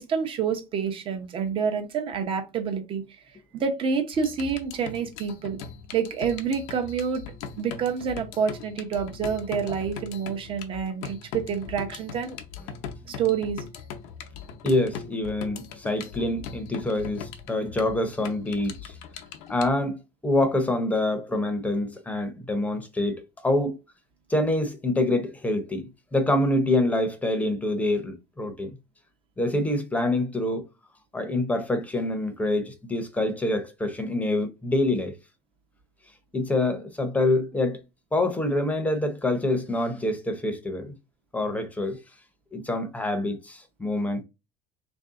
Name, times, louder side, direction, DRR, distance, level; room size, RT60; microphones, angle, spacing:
voice 1, 0.0-3.2 3.5-5.6 5.9-7.2 7.6-12.4 13.1-13.6, right 6 dB, 40° right, 0.8 m, -28 dB
sound 1, 4.1-19.7, left 7 dB, 85° left, 0.6 m, -40 dB
voice 2, 14.6-19.0 19.5-23.8 24.3-28.7 29.4-30.7 31.1-35.1 36.3-37.8 38.1-40.9 41.3-42.0 42.5-44.2, left 1 dB, 10° left, 0.7 m, -26 dB
3.3 x 2.7 x 3.6 m
cardioid pair, 130°, 14 cm